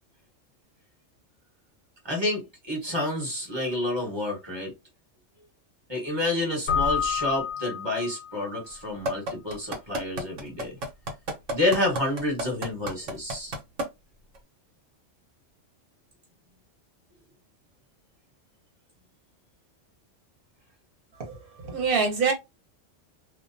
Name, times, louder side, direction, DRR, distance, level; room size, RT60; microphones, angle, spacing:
voice 1, 2.0-4.7 5.9-10.7 11.5-13.6, left 1 dB, 20° right, 1.1 m, -29 dB
Keyboard (musical), 6.7-8.5, left 7 dB, 90° left, 1.0 m, -28 dB
sound 1, 9.1-13.8 14.4-14.5, right 1 dB, 75° right, 1.1 m, -30 dB
voice 2, 21.6-22.3, right 5 dB, 50° right, 1.0 m, -24 dB
2.5 x 2.1 x 2.6 m
omnidirectional pair, 1.3 m